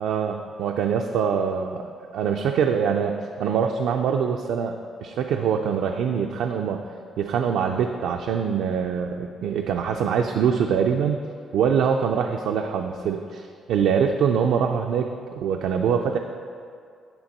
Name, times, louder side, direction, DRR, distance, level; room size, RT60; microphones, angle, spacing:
voice 1, 0.0-1.9 2.1-6.8 7.2-11.2 11.5-16.2, right 7 dB, 85° right, 3 dB, 0.3 m, -24 dB
10.0 x 3.5 x 5.3 m, 2.3 s
cardioid pair, 90°, 0 cm